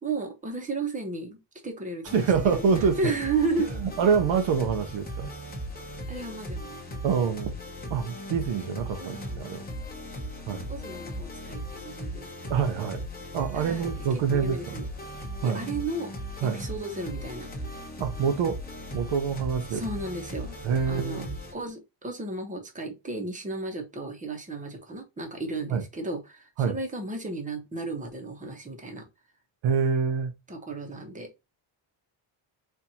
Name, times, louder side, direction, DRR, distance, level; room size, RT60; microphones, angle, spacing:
voice 1, 0.0-2.2 2.5-2.7 3.0-3.7 6.1-7.3 9.0-9.7 10.7-12.5 13.5-14.9 15.4-16.1 16.4-17.8 19.7-20.6 20.9-21.3 21.5-29.0 30.5-31.3, right 3 dB, 15° right, 0.9 m, -34 dB
sound 1, 2.0-21.5, equal, 20° left, 1.0 m, -38 dB
voice 2, 2.1-3.1 3.8-5.3 7.0-7.5 7.9-9.6 10.5-10.7 12.5-13.0 13.3-14.8 15.4-15.6 16.4-16.6 18.0-18.6 18.9-19.8 20.6-21.3 25.7-25.8 26.6-26.7 29.6-30.3, right 6 dB, 70° right, 0.7 m, -26 dB
4.3 x 2.5 x 2.7 m
cardioid pair, 155°, 49 cm